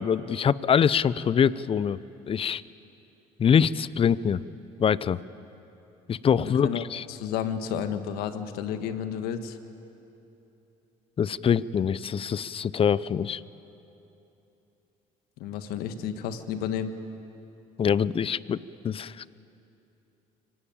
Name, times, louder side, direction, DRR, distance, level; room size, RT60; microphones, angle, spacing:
voice 1, 0.0-2.0 2.3-2.6 3.4-4.4 4.8-5.2 6.1-7.0 11.2-13.4 17.8-18.6 18.8-19.3, left 7 dB, 35° left, 19 dB, 0.6 m, -24 dB
voice 2, 6.4-9.6 15.4-16.9, left 8 dB, 75° left, 9 dB, 1.6 m, -32 dB
24.5 x 18.5 x 8.9 m, 3.0 s
supercardioid pair, 75°, 16 cm